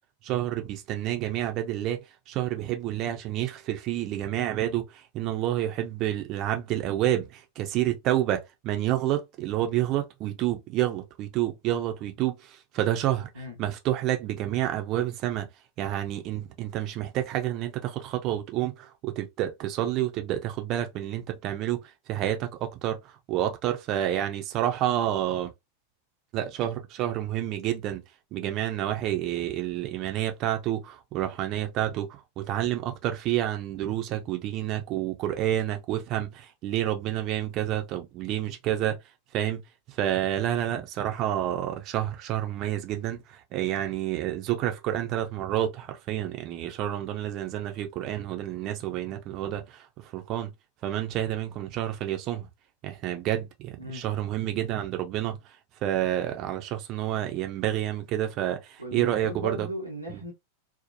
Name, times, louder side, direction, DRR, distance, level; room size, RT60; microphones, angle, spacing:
voice 1, 0.2-2.0 2.3-15.5 15.8-25.5 26.3-28.0 28.3-39.0 39.3-50.5 50.8-52.5 52.8-59.7 60.1-60.2, right 12 dB, 40° right, 0.4 m, -29 dB
voice 2, 58.8-60.3, right 1 dB, 90° left, 0.9 m, -36 dB
2.7 x 2.1 x 2.6 m
figure-of-eight pair, 90°, 0 cm